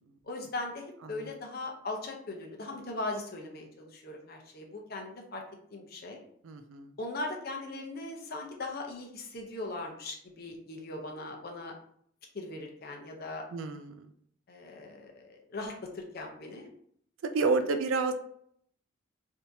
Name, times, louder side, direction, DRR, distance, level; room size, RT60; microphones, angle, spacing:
voice 1, 0.2-5.4 5.7-6.2 7.0-11.7 12.3-13.4 14.5-16.7, left 2 dB, 50° left, 2 dB, 0.7 m, -39 dB
voice 2, 6.4-6.9 13.5-14.1 17.2-18.1, right 4 dB, 85° right, 8 dB, 0.4 m, -29 dB
3.5 x 2.7 x 2.6 m, 0.64 s
head